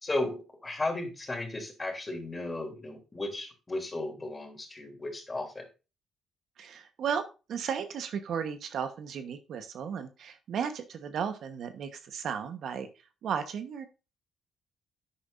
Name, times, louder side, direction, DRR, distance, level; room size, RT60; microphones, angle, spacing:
voice 1, 0.0-5.6, left 2 dB, 20° left, 4 dB, 3.0 m, -35 dB
voice 2, 6.6-12.9 13.2-13.9, right 7 dB, 70° right, 9 dB, 1.1 m, -35 dB
10.5 x 8.7 x 2.6 m, 0.30 s
cardioid pair, 90°, 0 cm